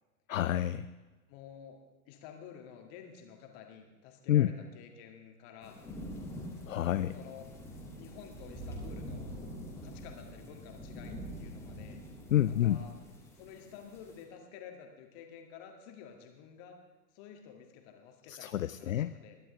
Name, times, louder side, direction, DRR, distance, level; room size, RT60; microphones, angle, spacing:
voice 1, 0.3-0.9 4.3-4.5 6.7-7.1 12.3-12.8 18.3-19.1, left 12 dB, 60° left, 13 dB, 0.5 m, -28 dB
voice 2, 1.3-1.8 2.1-5.8 7.1-7.5 7.9-9.3 9.8-12.0 12.5-12.9 13.3-16.8 17.1-19.4, left 7 dB, 30° left, 4 dB, 1.8 m, -51 dB
sound 1, 5.6-14.2, equal, 5° left, 2.0 m, -45 dB
21.0 x 11.0 x 3.3 m, 1.2 s
figure-of-eight pair, 105°, 45 cm